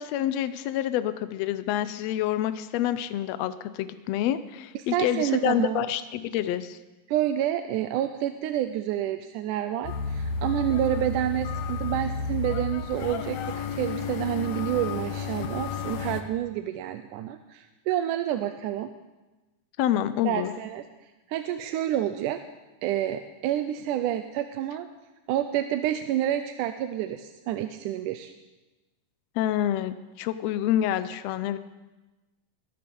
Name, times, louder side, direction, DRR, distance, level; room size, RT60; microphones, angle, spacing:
voice 1, 0.0-6.8 19.8-20.5 29.4-31.6, left 11 dB, 85° left, 12 dB, 1.4 m, -27 dB
voice 2, 4.8-5.8 7.1-18.9 20.2-20.8 21.3-22.4 22.8-24.9 25.3-28.3, right 12 dB, 80° right, 8 dB, 2.1 m, -28 dB
sound 1, 9.8-16.2, left 5 dB, 70° left, 2.0 m, -32 dB
21.0 x 11.5 x 5.4 m, 1.1 s
omnidirectional pair, 3.8 m